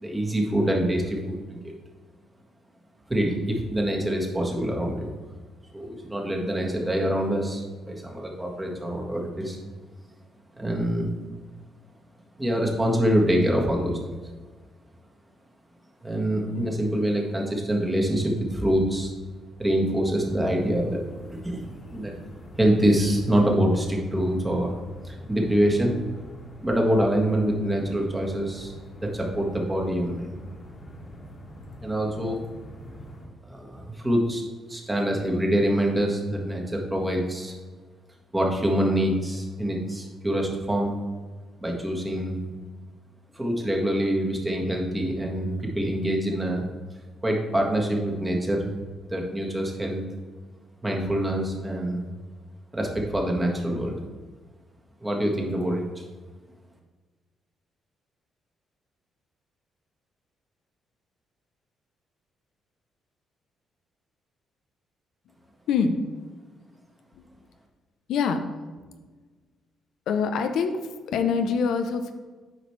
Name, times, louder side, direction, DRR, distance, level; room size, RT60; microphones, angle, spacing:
voice 1, 0.0-1.6 3.1-5.1 5.7-9.6 10.6-11.1 12.4-14.2 16.0-19.1 19.6-21.0 21.3-21.6 21.9-22.2 22.6-24.7 25.0-26.0 26.6-28.7 29.0-30.3 31.8-32.4 33.5-34.4 34.7-37.5 38.3-40.9 41.6-42.4 43.3-46.7 47.2-48.7 49.1-50.0 50.8-52.1 52.7-54.0 55.0-56.0, equal, 15° right, 0 dB, 1.5 m, -25 dB
sound 1, 20.2-33.3, equal, 40° left, 1.5 m, -44 dB
voice 2, 65.7-66.0 67.1-67.3 68.1-68.4 68.8-68.9 70.1-70.8 71.1-72.1, left 5 dB, 80° left, 7 dB, 0.5 m, -25 dB
9.0 x 5.1 x 3.2 m, 1.4 s
cardioid pair, 90°, 0 cm